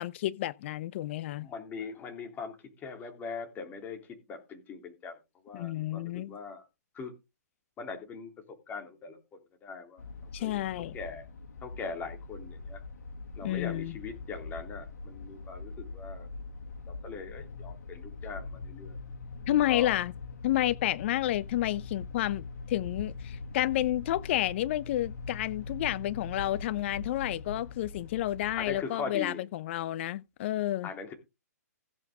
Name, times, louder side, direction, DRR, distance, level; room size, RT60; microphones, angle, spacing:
voice 1, 0.0-1.5 5.5-6.3 10.3-11.0 13.4-14.0 19.5-20.1 20.4-30.9, left 14 dB, 45° left, 0.8 m, -30 dB
voice 2, 1.4-5.2 5.4-6.7 6.9-7.1 7.8-8.3 8.7-10.1 10.4-11.3 11.6-12.8 13.4-16.3 16.9-19.0 19.7-20.0 28.6-29.4 30.8-31.1, left 5 dB, 20° left, 3.3 m, -41 dB
sound 1, 10.0-28.8, left 3 dB, 70° left, 2.6 m, -42 dB
15.5 x 8.2 x 3.7 m
hypercardioid pair, 130°, 9 cm